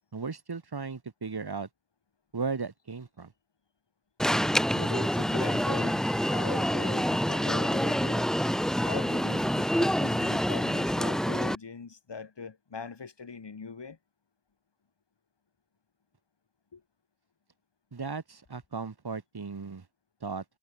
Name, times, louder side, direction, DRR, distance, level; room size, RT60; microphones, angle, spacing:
voice 1, 0.1-1.7 2.3-3.3 17.9-19.9 20.2-20.4, right 4 dB, 60° right, 3.3 m, -36 dB
Alarm, 4.2-11.5, equal, ahead, 0.7 m, -27 dB
voice 2, 4.7-8.3 8.8-14.0 16.7-16.8, left 5 dB, 70° left, 4.2 m, -41 dB
wide cardioid pair, 60°, 44 cm